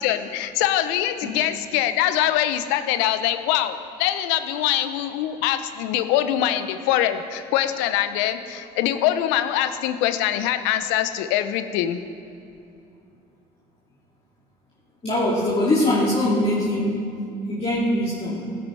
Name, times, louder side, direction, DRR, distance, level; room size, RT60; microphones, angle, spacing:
voice 1, 0.0-12.0, left 11 dB, 80° left, 10 dB, 0.8 m, -23 dB
voice 2, 15.0-17.1 17.5-18.5, left 1 dB, 30° left, -7 dB, 3.0 m, -22 dB
16.5 x 9.7 x 4.7 m, 2.5 s
hypercardioid pair, 65°, 19 cm